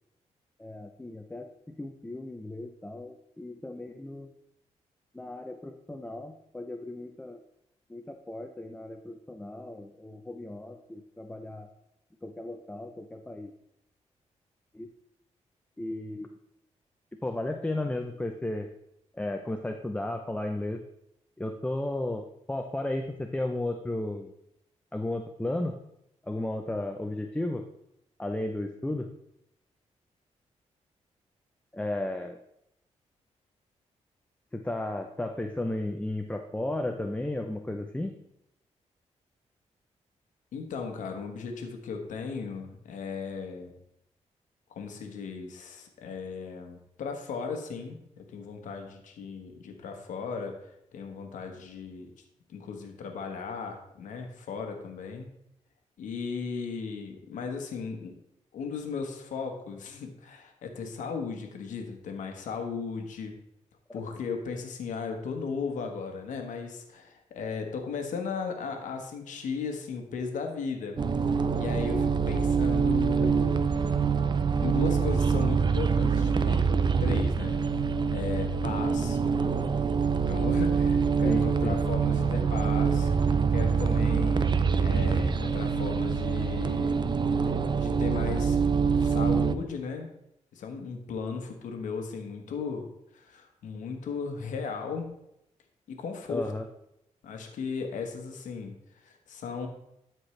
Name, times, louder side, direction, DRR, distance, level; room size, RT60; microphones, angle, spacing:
voice 1, 0.6-4.3 5.1-7.4 7.9-11.7 12.2-13.5 14.7-14.9 15.8-16.3 17.2-18.7 19.1-20.8 21.4-24.3 24.9-25.7 26.2-27.6 28.2-29.1 31.7-32.4 34.5-38.1 81.2-81.8 96.3-96.6, left 1 dB, 10° left, 4 dB, 0.6 m, -34 dB
voice 2, 40.5-43.7 44.7-50.6 50.9-52.1 52.5-55.3 56.0-58.1 58.5-63.3 63.9-71.0 71.6-73.7 74.6-76.6 77.0-77.6 78.1-79.2 80.3-83.1 83.5-87.0 87.8-88.6 89.0-90.1 90.5-92.9 93.1-95.1 95.9-96.5 97.2-99.7, left 5 dB, 90° left, 3 dB, 1.2 m, -36 dB
sound 1, 71.0-89.5, right 5 dB, 35° right, 0.5 m, -25 dB
13.0 x 4.4 x 3.2 m, 0.79 s
cardioid pair, 80°, 13 cm